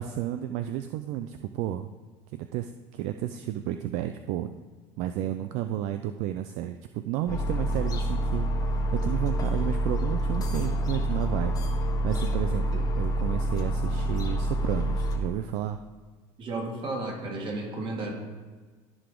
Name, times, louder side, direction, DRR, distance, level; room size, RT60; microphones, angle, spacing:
voice 1, 0.0-1.9 2.3-4.5 5.0-15.8, right 12 dB, 70° right, 9 dB, 0.4 m, -32 dB
sound 1, 7.3-15.2, right 1 dB, 30° left, 1.3 m, -27 dB
voice 2, 16.4-18.1, right 2 dB, 45° right, 0 dB, 2.1 m, -33 dB
13.5 x 4.9 x 3.8 m, 1.4 s
supercardioid pair, 105°, 12 cm